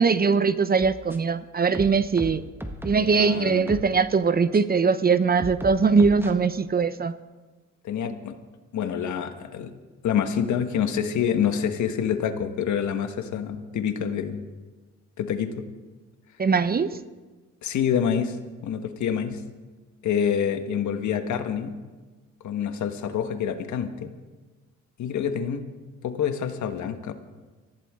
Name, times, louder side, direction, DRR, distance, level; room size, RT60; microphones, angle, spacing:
voice 1, 0.0-2.4 2.8-7.1 16.4-17.0, right 5 dB, 30° right, 13 dB, 0.7 m, -21 dB
sound 1, 0.8-1.4 1.7-3.1 3.7-3.9 4.5-4.6 5.4-6.3, right 1 dB, 5° right, 1.5 m, -36 dB
voice 2, 3.0-3.9 7.8-8.3 8.7-9.7 10.0-14.4 15.2-15.6 17.6-18.4 18.6-19.4 20.0-21.7 22.4-24.1 25.0-25.6 26.0-27.1, left 8 dB, 70° left, 7 dB, 1.5 m, -27 dB
23.5 x 15.0 x 3.7 m, 1.3 s
cardioid pair, 90°, 30 cm